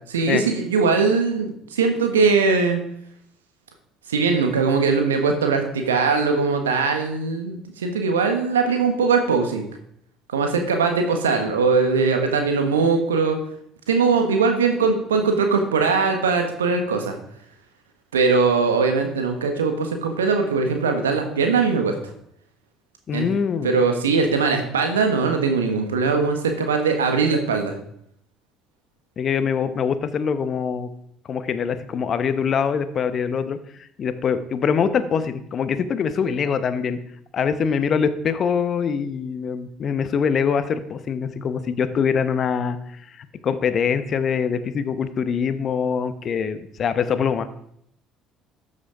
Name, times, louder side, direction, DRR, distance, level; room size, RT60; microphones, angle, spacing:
voice 1, 0.1-2.8 4.1-9.7 10.3-13.4 13.9-17.2 18.1-21.9 23.1-23.3 23.6-27.7, right 4 dB, 85° right, 5 dB, 1.3 m, -20 dB
voice 2, 23.1-23.7 29.2-30.9 31.3-37.0 37.3-42.8 43.2-47.5, left 6 dB, 45° left, 12 dB, 1.1 m, -24 dB
13.0 x 6.4 x 5.0 m, 0.70 s
hypercardioid pair, 55°, 0 cm